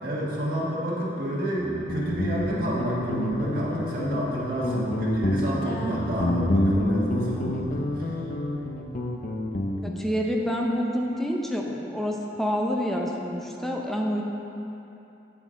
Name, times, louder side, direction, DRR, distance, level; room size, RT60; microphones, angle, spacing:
voice 1, 0.0-8.2, right 1 dB, 55° right, -7 dB, 1.3 m, -29 dB
Guitar, 1.6-10.1, left 1 dB, 50° left, 0.6 m, -28 dB
voice 2, 9.8-14.2, equal, ahead, -1 dB, 0.6 m, -27 dB
8.4 x 7.0 x 3.7 m, 3.0 s
head